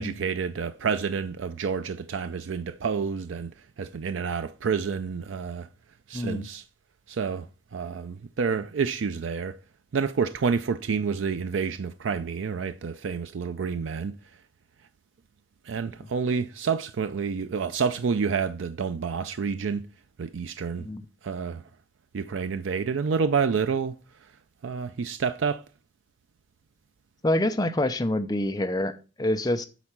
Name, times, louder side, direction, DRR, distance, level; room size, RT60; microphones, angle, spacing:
voice 1, 0.0-3.5 3.8-5.7 6.1-6.6 7.1-9.6 9.9-14.2 15.7-19.9 20.2-20.9 21.2-21.6 22.1-23.9 24.6-25.6, right 5 dB, 85° right, 0.4 m, -29 dB
voice 2, 6.1-6.5 20.8-21.0 27.2-29.7, left 1 dB, 20° left, 0.6 m, -26 dB
8.1 x 4.3 x 6.0 m
head